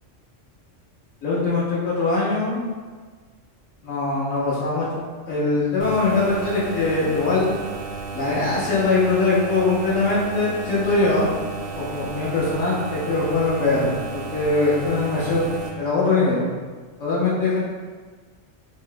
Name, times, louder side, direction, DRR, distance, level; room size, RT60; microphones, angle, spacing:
voice 1, 1.2-2.6 3.8-4.9 5.3-7.5 8.1-11.3 11.7-15.5 15.8-16.4 17.0-17.6, left 3 dB, 75° left, -6 dB, 1.1 m, -22 dB
sound 1, 5.8-15.7, right 4 dB, 60° right, 0.6 m, -33 dB
3.6 x 2.1 x 3.8 m, 1.5 s
omnidirectional pair, 1.3 m